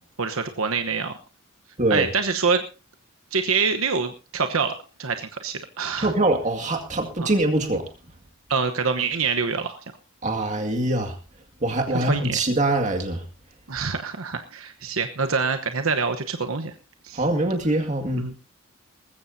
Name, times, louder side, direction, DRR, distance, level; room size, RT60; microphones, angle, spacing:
voice 1, 0.2-1.1 1.9-2.6 3.3-6.1 7.2-7.3 8.5-9.8 11.9-12.4 13.7-16.7 17.0-17.2 18.2-18.3, right 5 dB, 75° right, 7 dB, 1.1 m, -25 dB
voice 2, 6.0-7.9 10.2-11.1 11.6-13.2 17.1-18.4, right 2 dB, 35° right, 3 dB, 2.1 m, -23 dB
19.5 x 15.0 x 2.8 m, 0.31 s
head